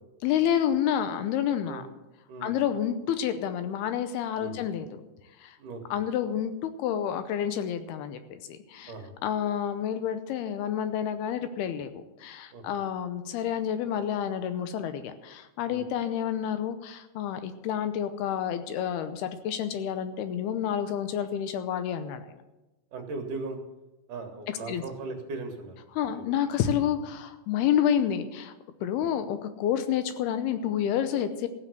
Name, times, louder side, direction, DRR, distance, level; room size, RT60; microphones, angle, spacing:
voice 1, 0.2-1.8 2.4-4.9 5.4-5.6 5.9-8.9 9.2-22.3 24.7-24.8 26.0-28.5 28.8-31.5, left 9 dB, 80° left, 10 dB, 2.6 m, -29 dB
voice 2, 5.6-6.0 8.9-9.1 12.5-12.6 15.6-15.8 22.9-23.6 24.1-25.8 26.1-26.3 28.9-29.0, right 3 dB, 60° right, 4 dB, 2.7 m, -38 dB
15.0 x 7.6 x 7.8 m, 1.0 s
omnidirectional pair, 4.9 m